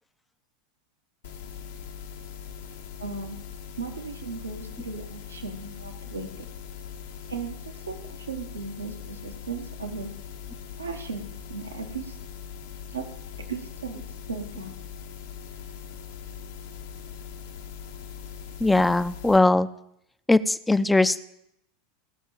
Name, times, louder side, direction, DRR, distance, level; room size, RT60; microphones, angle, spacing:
sound 1, 1.2-19.4, left 8 dB, 70° left, 1.5 m, -41 dB
voice 1, 3.0-3.4 3.8-6.5 7.3-7.6 7.8-10.1 10.8-12.2 12.9-13.1 13.5-14.0 14.3-14.7, right 5 dB, 85° right, 4 dB, 1.6 m, -36 dB
voice 2, 18.6-19.7 20.3-21.2, left 2 dB, 10° left, 14 dB, 0.6 m, -20 dB
16.5 x 6.4 x 7.4 m, 0.78 s
figure-of-eight pair, 85°, 0 cm